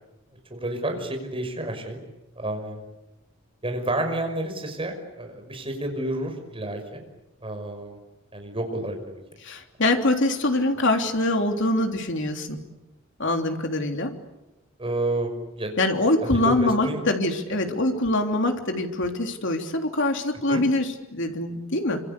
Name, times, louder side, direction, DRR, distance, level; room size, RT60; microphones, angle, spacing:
voice 1, 0.5-2.0 2.4-2.8 3.6-7.0 7.4-8.0 8.3-9.2 14.8-15.7 16.2-17.0 20.5-20.6, right 1 dB, 25° right, 4 dB, 5.9 m, -30 dB
voice 2, 9.4-12.6 13.2-14.1 15.8-22.0, left 2 dB, 60° left, 4 dB, 3.3 m, -24 dB
27.0 x 26.0 x 8.4 m, 0.99 s
head